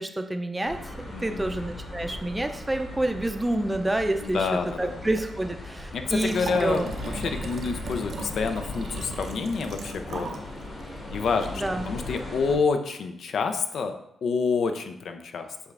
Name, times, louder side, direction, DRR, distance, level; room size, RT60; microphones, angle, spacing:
voice 1, 0.0-4.5 4.8-6.9 11.5-11.9, right 1 dB, 15° right, 7 dB, 0.5 m, -28 dB
sound 1, 0.6-12.5, left 2 dB, 50° left, 1.7 m, -38 dB
voice 2, 1.1-1.5 4.2-5.0 5.9-10.4 11.1-13.9 14.2-15.6, left 5 dB, 75° left, 7 dB, 0.4 m, -28 dB
Liquid, 6.2-10.5 10.8-10.9, right 3 dB, 65° right, 0.5 m, -38 dB
6.9 x 2.4 x 3.3 m, 0.80 s
cardioid pair, 70°, 0 cm